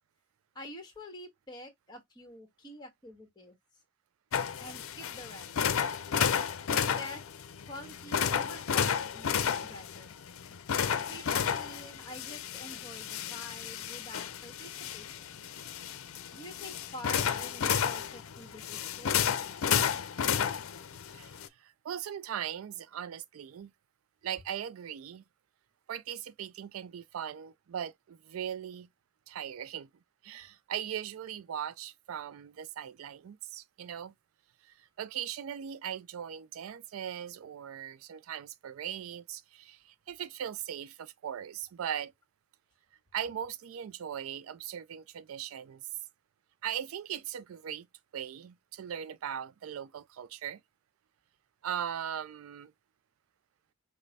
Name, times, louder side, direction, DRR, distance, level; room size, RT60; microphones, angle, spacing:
voice 1, 0.5-3.5 4.6-5.6 6.7-7.2 7.7-10.2 11.1-15.4 16.3-19.2, left 1 dB, 20° left, 1.4 m, -47 dB
sound 1, 4.3-21.5, left 8 dB, 85° left, 0.5 m, -32 dB
voice 2, 21.1-23.7 24.2-25.2 25.9-28.9 29.3-29.9 30.2-34.1 34.6-42.1 43.1-45.9 46.6-47.9 48.1-50.6 51.6-52.7, right 9 dB, 85° right, 0.4 m, -39 dB
5.2 x 2.1 x 4.0 m
head